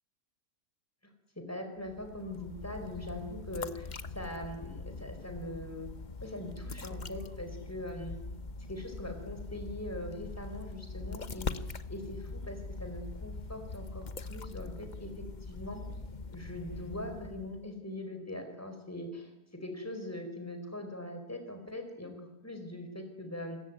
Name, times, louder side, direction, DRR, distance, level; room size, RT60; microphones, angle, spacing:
voice 1, 1.3-5.9 6.2-8.2 8.6-15.8 16.3-23.6, left 1 dB, 10° left, 6 dB, 4.9 m, -42 dB
sound 1, 1.8-17.7, left 3 dB, 35° left, 0.9 m, -42 dB
28.0 x 21.0 x 9.4 m, 0.96 s
omnidirectional pair, 1.8 m